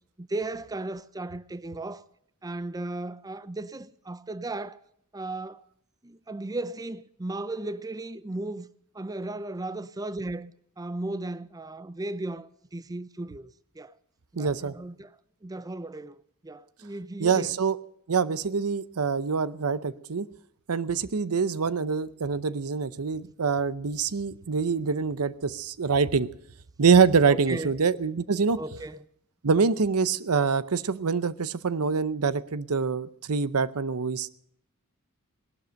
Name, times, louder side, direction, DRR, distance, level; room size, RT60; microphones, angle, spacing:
voice 1, 0.2-2.1 2.4-4.8 5.1-5.6 6.0-8.7 8.9-14.0 14.3-17.6 27.3-27.7 28.6-29.1, right 2 dB, 15° right, 0.5 m, -36 dB
voice 2, 14.4-14.7 17.2-17.8 18.1-20.3 20.7-26.3 26.8-28.6 29.4-34.3, right 5 dB, 85° right, 0.7 m, -25 dB
18.5 x 12.0 x 6.4 m
head